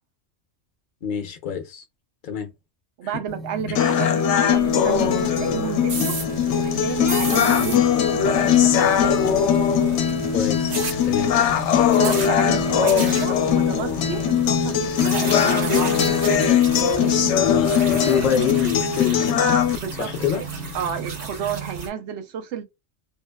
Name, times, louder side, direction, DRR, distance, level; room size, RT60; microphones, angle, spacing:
voice 1, 1.0-1.8 2.2-2.5 7.6-7.8 10.3-10.8 11.0-11.3 17.4-19.4 20.0-20.4, left 7 dB, 50° left, 0.7 m, -25 dB
voice 2, 3.0-6.2 6.4-7.8 8.1-9.2 12.0-16.1 19.8-20.4 20.7-22.6, right 8 dB, 80° right, 0.9 m, -31 dB
sound 1, 3.3-21.3, right 1 dB, ahead, 0.4 m, -41 dB
sound 2, 3.8-19.8, left 8 dB, 80° left, 0.9 m, -20 dB
sound 3, 4.5-21.9, right 4 dB, 45° right, 0.6 m, -33 dB
2.7 x 2.1 x 2.2 m
omnidirectional pair, 1.2 m